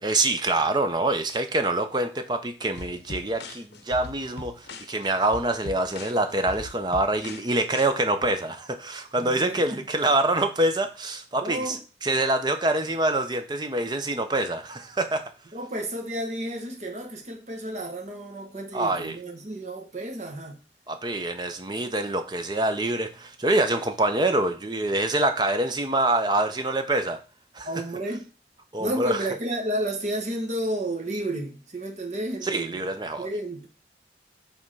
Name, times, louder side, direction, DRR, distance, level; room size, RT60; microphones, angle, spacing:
voice 1, 0.0-15.2 18.7-19.2 20.9-27.2 27.5-27.7 28.7-29.3 32.4-33.3, right 2 dB, 25° right, 0.6 m, -25 dB
sound 1, 2.8-7.9, left 3 dB, 75° left, 0.8 m, -41 dB
voice 2, 9.2-10.1 11.3-11.8 15.5-20.6 27.6-28.3 28.8-32.8 33.2-33.7, right 1 dB, 40° right, 1.1 m, -32 dB
5.2 x 3.6 x 5.5 m
head